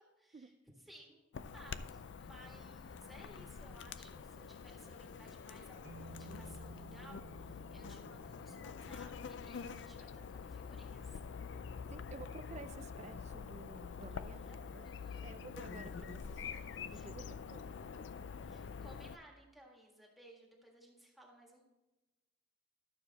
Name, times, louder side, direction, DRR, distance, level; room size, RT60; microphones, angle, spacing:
voice 1, 0.2-0.5 0.9-1.2 1.5-11.2 14.1-14.6 14.8-15.2 16.9-17.1 18.4-21.7, right 1 dB, ahead, -2 dB, 1.6 m, -59 dB
Chirp tweet / Buzz, 1.3-19.2, left 6 dB, 80° left, 0.4 m, -46 dB
sound 1, 5.8-10.1, right 4 dB, 85° right, 0.8 m, -57 dB
voice 2, 11.9-14.9 15.2-16.6 16.9-17.7, right 4 dB, 40° right, 12 dB, 0.4 m, -52 dB
12.0 x 6.9 x 4.1 m, 1.1 s
head